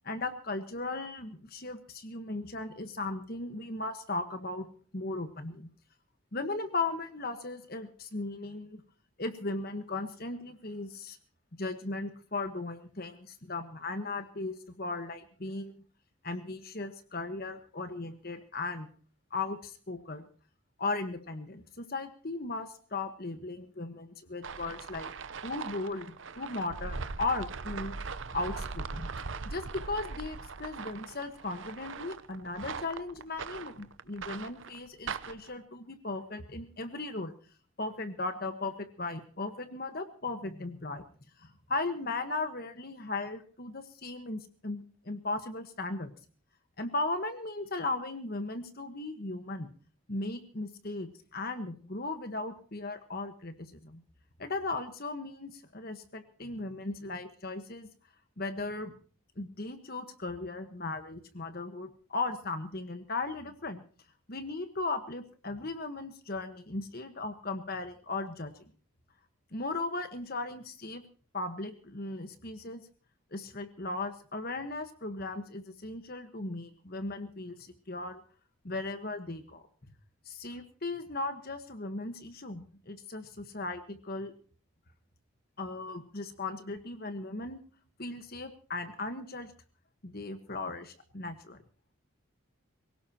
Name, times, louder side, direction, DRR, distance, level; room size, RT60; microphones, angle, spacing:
voice 1, 0.0-4.7 4.9-5.7 6.3-8.8 9.2-11.2 11.6-15.8 16.2-18.9 19.3-20.3 20.8-25.1 25.4-28.0 28.3-29.1 29.4-37.3 37.8-41.0 41.4-46.1 46.8-49.7 50.1-54.0 54.4-57.9 58.4-58.9 59.4-63.8 64.3-68.6 69.5-71.0 71.3-72.8 73.3-78.2 78.6-79.6 80.3-84.3 85.6-87.6 88.0-89.5 90.0-91.6, left 2 dB, 45° left, 8 dB, 1.3 m, -37 dB
sound 1, 24.4-35.5, right 4 dB, 60° right, 0.7 m, -40 dB
24.0 x 17.0 x 2.9 m, 0.42 s
head